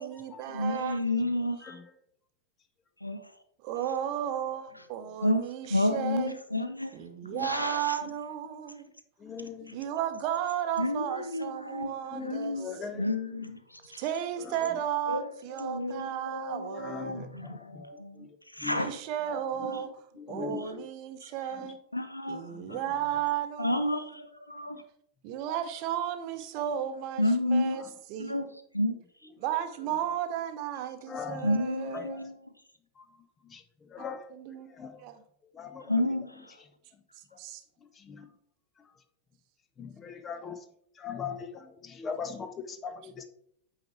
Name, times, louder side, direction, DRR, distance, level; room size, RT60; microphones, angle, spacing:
voice 1, 0.0-1.0 3.6-6.4 6.9-8.9 9.7-12.9 14.0-17.3 18.7-21.8 22.3-24.2 25.2-27.8 28.1-28.5 29.4-32.2 34.0-34.7 35.0-35.2 37.4-37.6, right 10 dB, 45° right, 0.8 m, -34 dB
voice 2, 0.5-1.7 3.0-3.2 5.2-5.4 5.7-6.9 7.4-7.9 10.8-11.9 12.2-13.6 13.9-14.0 15.1-15.2 15.6-18.3 18.6-18.9 21.9-22.5 23.6-24.8 27.2-27.8 28.2-28.5 28.7-29.0 31.4-32.4 35.9-36.3, left 1 dB, 85° left, 0.5 m, -30 dB
voice 3, 9.2-9.8 12.1-13.0 16.8-17.9 18.2-18.3 18.6-18.8 20.2-20.8 21.6-21.7 22.4-22.8 24.7-24.8 31.1-31.5 31.9-32.2 33.0-33.1 33.5-33.6 33.9-34.3 34.7-35.0 35.5-35.9 38.0-38.3 39.8-40.6 41.0-43.2, left 6 dB, 25° left, 0.8 m, -40 dB
8.5 x 4.7 x 3.3 m
figure-of-eight pair, 90°, 0 cm